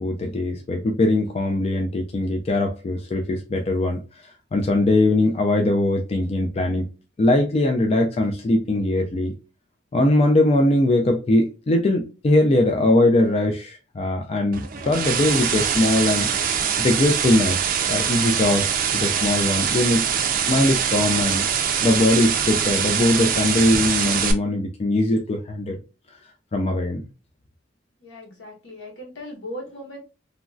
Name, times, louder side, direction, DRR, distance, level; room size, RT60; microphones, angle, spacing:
voice 1, 0.0-6.9 7.2-9.3 9.9-16.3 16.8-20.2 20.5-21.5 21.8-25.8 26.5-27.0, left 1 dB, 30° left, 3 dB, 0.3 m, -21 dB
sound 1, 14.5-24.3, right 8 dB, 45° right, 0.4 m, -23 dB
voice 2, 28.0-30.0, left 1 dB, 70° left, -1 dB, 1.2 m, -38 dB
3.0 x 2.5 x 2.3 m, 0.32 s
head